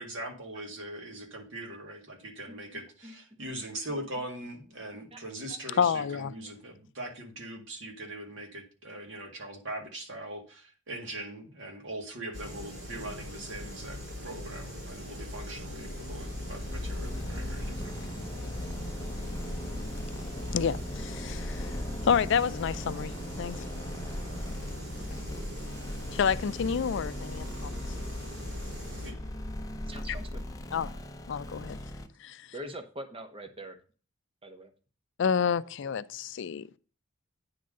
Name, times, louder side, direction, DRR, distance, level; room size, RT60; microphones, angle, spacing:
voice 1, 0.0-18.0 29.0-29.2, right 1 dB, 65° right, 1.9 m, -41 dB
voice 2, 2.5-3.4 5.1-5.6 29.9-30.4 32.5-33.8 34.4-34.7, right 1 dB, 25° right, 1.1 m, -44 dB
voice 3, 5.8-6.3 20.5-21.7 22.0-23.6 26.1-27.8 30.7-30.9 31.3-31.8 32.2-32.5 35.2-36.8, left 7 dB, 60° left, 0.4 m, -29 dB
sound 1, 12.3-29.1, left 1 dB, 85° right, 4.3 m, -41 dB
sound 2, 15.6-32.1, left 1 dB, 15° left, 0.8 m, -38 dB
9.5 x 3.9 x 6.5 m
head